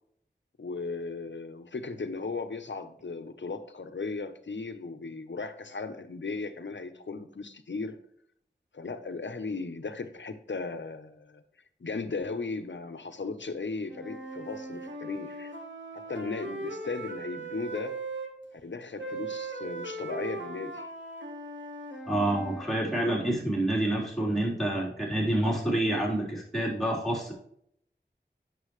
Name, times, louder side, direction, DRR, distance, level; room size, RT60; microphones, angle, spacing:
voice 1, 0.6-8.0 8.7-11.4 11.8-15.5 16.1-18.0 18.5-20.9, left 3 dB, 85° left, 0.9 m, -36 dB
Wind instrument woodwind instrument, 13.9-18.3 19.0-22.7, right 2 dB, 90° right, 1.4 m, -39 dB
voice 2, 22.1-27.3, right 1 dB, ahead, 3.8 m, -28 dB
8.5 x 6.9 x 3.2 m
wide cardioid pair, 50°, 19 cm